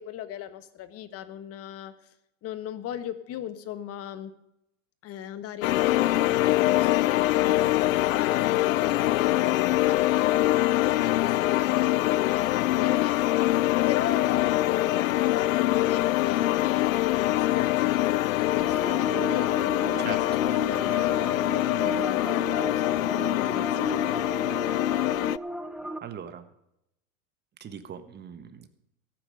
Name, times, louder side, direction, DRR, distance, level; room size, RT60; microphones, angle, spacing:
voice 1, 0.0-1.9 2.4-4.3 5.0-13.5 13.8-24.2, left 10 dB, 35° left, 12 dB, 1.4 m, -37 dB
sound 1, 5.6-25.4, left 16 dB, 80° left, 0.5 m, -24 dB
sound 2, 18.6-26.0, right 2 dB, ahead, 0.7 m, -36 dB
voice 2, 26.0-26.5 27.6-28.7, right 8 dB, 25° right, 11 dB, 1.4 m, -40 dB
14.5 x 9.3 x 6.5 m, 0.82 s
hypercardioid pair, 115°, 39 cm